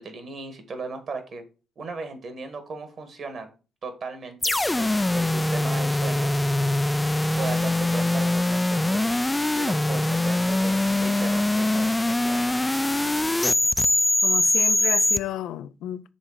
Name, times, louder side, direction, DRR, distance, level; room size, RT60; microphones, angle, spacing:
voice 1, 0.0-1.4 1.8-3.5 3.8-6.7 7.4-9.2 9.5-13.1, right 4 dB, 55° right, 1.7 m, -37 dB
sound 1, 4.4-15.2, left 2 dB, 10° left, 0.3 m, -23 dB
voice 2, 14.2-16.1, left 12 dB, 85° left, 0.4 m, -32 dB
6.3 x 3.6 x 5.0 m
cardioid pair, 90°, 0 cm